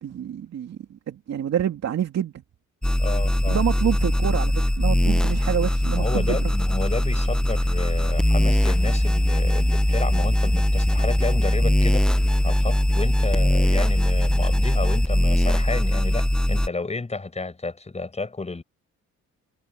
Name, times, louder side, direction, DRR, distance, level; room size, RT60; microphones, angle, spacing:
voice 1, 0.0-2.4 3.5-6.5, right 9 dB, 60° right, 2.7 m, -27 dB
sound 1, 2.8-16.7, left 1 dB, 5° left, 0.7 m, -21 dB
voice 2, 3.0-3.6 6.0-12.1 12.4-18.6, left 3 dB, 20° left, 6.6 m, -31 dB
cardioid pair, 90°, 30 cm